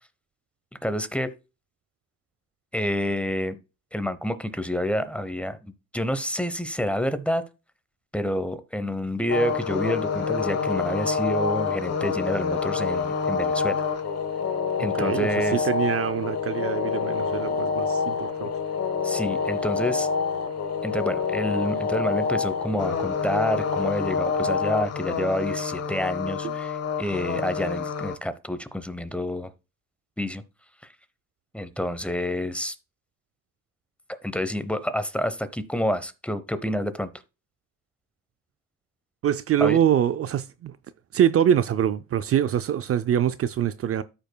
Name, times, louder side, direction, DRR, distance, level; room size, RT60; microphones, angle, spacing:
voice 1, 0.8-1.3 2.7-3.6 3.9-7.4 8.1-13.8 14.8-15.7 19.0-20.1 20.8-29.5 30.2-30.4 31.5-32.7 34.2-37.1 39.6-39.8, equal, 5° left, 0.8 m, -28 dB
sound 1, 9.3-28.2, left 5 dB, 55° left, 1.2 m, -27 dB
voice 2, 14.8-18.5 26.4-26.5 39.2-40.7 41.1-44.0, right 10 dB, 50° right, 0.5 m, -24 dB
13.5 x 5.2 x 2.2 m
cardioid pair, 90°, 30 cm